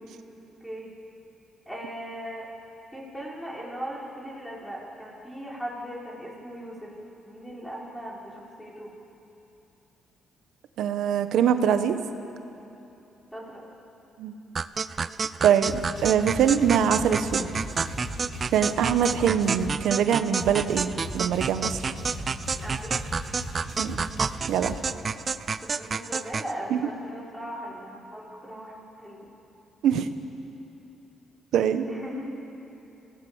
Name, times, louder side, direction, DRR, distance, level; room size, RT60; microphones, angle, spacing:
voice 1, 0.3-0.9 1.7-2.5 2.9-6.9 7.2-8.9 13.3-13.7 22.6-23.0 23.3-23.4 25.6-29.3 31.9-32.4, equal, 5° left, -4 dB, 5.4 m, -38 dB
voice 2, 10.8-11.9 14.2-14.3 15.4-17.5 18.5-21.8 23.8-24.0 24.5-24.7 26.7-26.8 29.8-30.1 31.5-31.9, right 8 dB, 80° right, 9 dB, 1.1 m, -23 dB
sound 1, 14.6-26.5, right 5 dB, 40° right, 0.5 m, -30 dB
sound 2, 15.6-19.8 20.4-24.8, left 1 dB, 55° left, 6.6 m, -38 dB
25.5 x 16.0 x 7.3 m, 2.9 s
cardioid pair, 90°, 0 cm